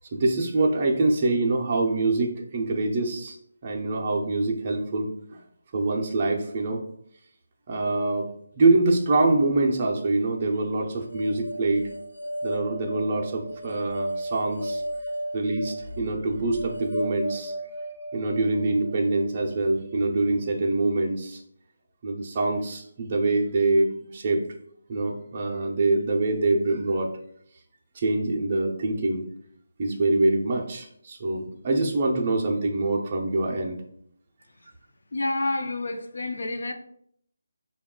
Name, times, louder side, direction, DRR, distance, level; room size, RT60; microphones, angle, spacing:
voice 1, 0.1-3.4 3.6-5.1 5.7-6.8 7.7-8.3 8.6-11.9 12.4-14.8 15.3-17.5 18.1-21.4 22.0-24.4 24.9-27.1 27.9-29.3 29.8-33.8, right 2 dB, 20° right, 0 dB, 0.5 m, -24 dB
sound 1, 11.1-20.3, right 1 dB, 85° left, 1.0 m, -35 dB
voice 2, 35.1-36.7, left 2 dB, 60° left, 6 dB, 0.5 m, -29 dB
5.1 x 2.3 x 3.6 m, 0.69 s
hypercardioid pair, 180°, 0 cm